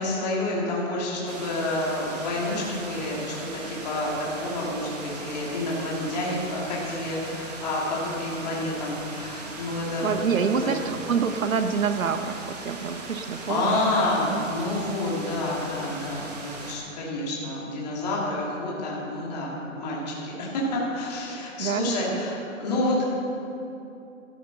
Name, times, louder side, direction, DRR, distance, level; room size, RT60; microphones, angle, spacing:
voice 1, 0.0-10.1 10.5-10.8 13.5-23.1, left 2 dB, 30° left, -5 dB, 2.6 m, -29 dB
sound 1, 1.3-16.8, right 3 dB, 30° right, 1.4 m, -39 dB
voice 2, 10.0-14.5 21.6-22.3, right 6 dB, 80° right, 8 dB, 1.1 m, -27 dB
13.5 x 11.0 x 5.7 m, 2.8 s
hypercardioid pair, 170°, 40 cm